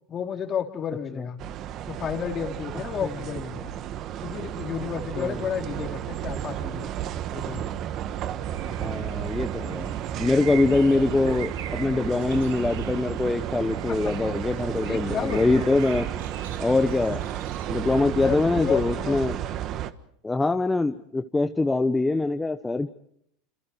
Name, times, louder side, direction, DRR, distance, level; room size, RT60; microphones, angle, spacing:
voice 1, 0.1-1.4 1.8-3.8 4.2-6.9 7.3-7.7 14.0-14.1 14.8-15.7 18.0-19.2, left 8 dB, 35° left, 5 dB, 3.4 m, -32 dB
sound 1, 1.4-19.9, right 11 dB, 45° right, 1.5 m, -32 dB
sound 2, 8.4-19.1, right 10 dB, 80° right, 3.3 m, -45 dB
voice 2, 8.8-16.1 16.6-17.2 17.7-19.4 20.2-22.9, left 3 dB, 10° left, 8 dB, 1.1 m, -24 dB
28.5 x 27.5 x 4.6 m, 0.71 s
supercardioid pair, 110°, 0 cm